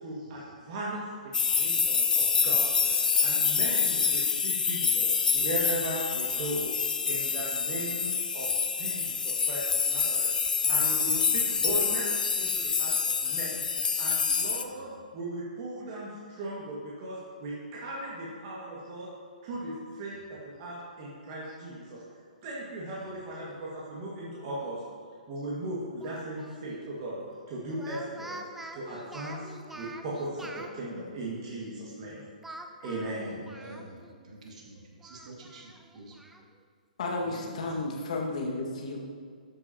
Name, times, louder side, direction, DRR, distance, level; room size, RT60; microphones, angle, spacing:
voice 1, 0.0-1.0 1.5-6.7 7.0-10.3 10.7-12.1 12.4-13.6 14.0-19.1 19.4-22.0 22.4-24.8 25.3-27.2 27.5-28.4 28.7-32.2 32.8-33.4, right 1 dB, 35° right, -6 dB, 1.9 m, -37 dB
sound 1, 1.3-14.6, left 5 dB, 70° left, 0.6 m, -27 dB
voice 2, 11.2-11.6 33.1-36.1 37.2-37.6, right 1 dB, 55° right, -3 dB, 2.5 m, -47 dB
Speech, 26.0-26.6 27.7-30.7 32.4-34.2 34.5-34.6 35.0-36.4, right 1 dB, 5° right, 0.5 m, -45 dB
voice 3, 37.0-39.0, left 2 dB, 55° left, 0 dB, 1.8 m, -32 dB
13.0 x 8.6 x 2.9 m, 2.1 s
figure-of-eight pair, 125°, 5 cm